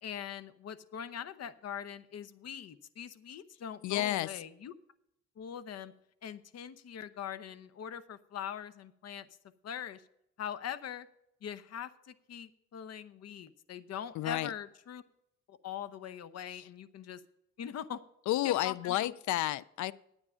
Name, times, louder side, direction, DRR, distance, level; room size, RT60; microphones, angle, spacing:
voice 1, 0.0-4.7 5.4-5.9 6.2-9.3 9.6-10.0 10.4-11.1 11.4-15.0 15.5-17.2 17.6-18.0 18.4-19.1, left 9 dB, 55° left, 14 dB, 0.8 m, -42 dB
voice 2, 3.8-4.3 14.2-14.5 16.5-16.6 18.3-19.9, left 14 dB, 75° left, 20 dB, 0.5 m, -31 dB
9.9 x 8.9 x 5.6 m, 0.79 s
cardioid pair, 90°, 30 cm